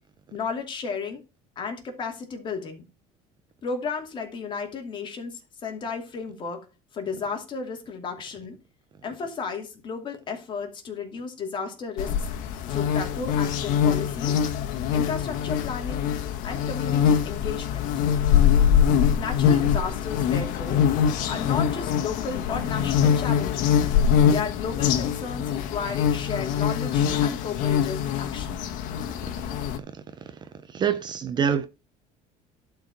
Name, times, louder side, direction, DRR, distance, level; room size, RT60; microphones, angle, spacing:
voice 1, 0.3-1.2 1.6-2.8 3.6-6.7 6.9-8.6 9.0-12.3 12.7-14.4 14.9-16.1 16.4-17.9 19.2-20.8 21.3-23.8 24.2-28.6, left 5 dB, 35° left, 2.7 m, -33 dB
sound 1, 12.0-29.8, left 8 dB, 70° left, 1.4 m, -23 dB
voice 2, 30.7-31.7, right 8 dB, 30° right, 0.7 m, -25 dB
11.5 x 4.8 x 5.5 m
cardioid pair, 150°, 14 cm